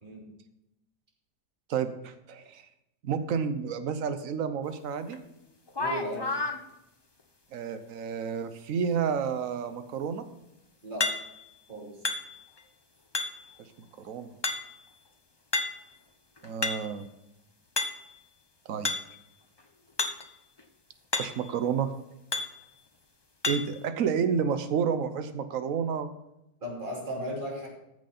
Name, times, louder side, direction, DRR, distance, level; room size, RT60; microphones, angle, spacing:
voice 1, 1.7-2.6 3.0-5.2 7.5-10.2 14.0-14.3 16.4-17.1 18.7-18.9 21.2-21.9 23.5-26.1, right 7 dB, 55° right, 10 dB, 1.2 m, -30 dB
sound 1, 5.1-5.2 5.7-6.6 11.0-11.5 12.0-12.6 13.1-13.6 14.4-14.9 15.5-15.9 16.4-17.0 17.8-18.2 18.8-19.2 20.0-20.3 20.6-20.7 21.1-21.5 22.3-22.6 23.4-23.8, left 3 dB, 25° left, 0.6 m, -31 dB
voice 2, 5.8-6.3 10.8-11.1 11.7-12.0 26.6-27.7, equal, 30° right, -3 dB, 3.2 m, -36 dB
14.0 x 6.5 x 4.2 m, 0.88 s
omnidirectional pair, 1.8 m